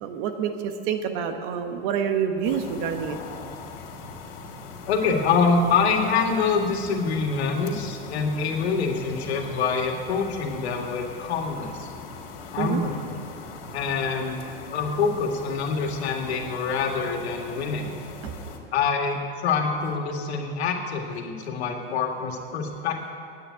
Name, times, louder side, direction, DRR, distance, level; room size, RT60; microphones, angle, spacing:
voice 1, 0.0-3.2 12.6-12.8 18.2-18.3, right 7 dB, 55° right, 7 dB, 1.3 m, -27 dB
sound 1, 2.4-18.6, left 4 dB, 65° left, 2.7 m, -41 dB
voice 2, 4.9-11.9 12.5-13.2 13.7-17.9 18.7-23.1, left 5 dB, 85° left, 2 dB, 2.0 m, -25 dB
9.3 x 9.1 x 9.4 m, 2.5 s
supercardioid pair, 135°, 31 cm